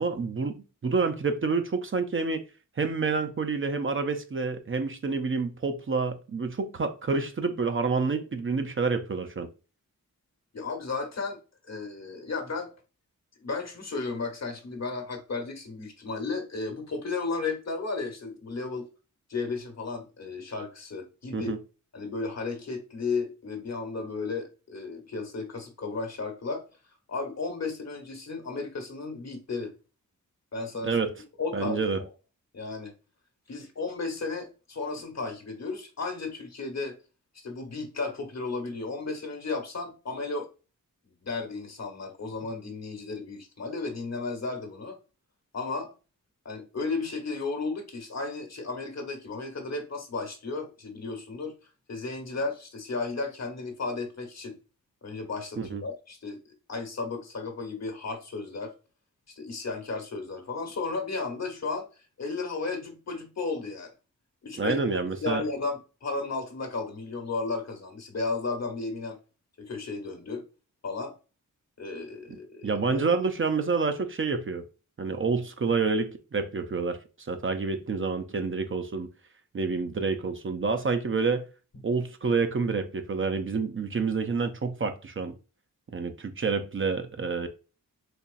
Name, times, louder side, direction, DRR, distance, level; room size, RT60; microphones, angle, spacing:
voice 1, 0.0-2.4 2.8-9.5 21.3-21.6 30.8-31.1 31.5-32.0 55.6-55.8 64.6-65.4 72.3-72.4 72.6-74.6 75.0-77.0 77.3-79.1 79.5-81.5 81.8-85.3 85.9-87.5, right 4 dB, 40° right, 0.5 m, -28 dB
voice 2, 10.5-11.4 11.7-12.7 13.4-18.8 19.3-21.5 21.9-26.6 27.1-29.7 30.5-31.0 31.4-32.1 32.5-32.9 33.5-36.9 37.3-40.5 41.2-45.0 45.5-45.9 46.4-51.5 51.9-54.5 55.0-56.4 56.7-58.7 59.3-61.8 62.2-63.9 64.4-69.2 69.6-70.4 70.8-71.1 71.8-73.0, left 3 dB, 50° left, 1.2 m, -34 dB
4.1 x 2.9 x 2.5 m
cardioid pair, 60°, 33 cm